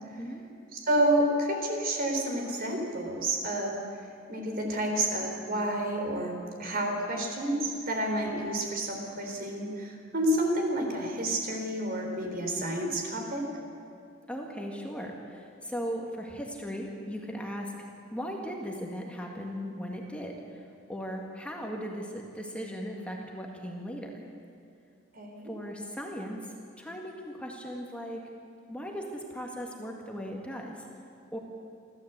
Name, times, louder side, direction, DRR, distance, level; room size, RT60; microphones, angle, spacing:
voice 1, 0.7-3.8 4.3-13.5 25.1-25.5, right 1 dB, 50° right, 2 dB, 3.9 m, -29 dB
voice 2, 14.3-17.7 18.1-24.2 25.4-28.2 28.7-30.9 31.3-31.4, equal, 5° left, 0 dB, 1.9 m, -38 dB
29.0 x 13.0 x 8.2 m, 2.4 s
head